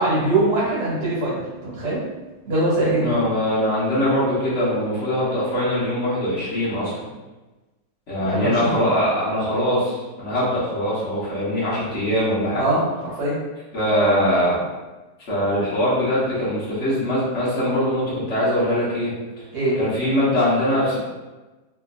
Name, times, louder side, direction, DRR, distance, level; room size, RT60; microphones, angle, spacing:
voice 1, 0.0-2.0 2.5-3.2 8.3-8.8 12.6-12.8 13.2-13.4 19.5-19.8, right 2 dB, 65° right, -9 dB, 1.6 m, -22 dB
voice 2, 3.0-7.0 8.1-12.7 13.7-14.6 15.3-19.1 19.8-21.0, equal, 45° left, -9 dB, 1.3 m, -22 dB
3.5 x 2.5 x 2.4 m, 1.1 s
omnidirectional pair, 2.0 m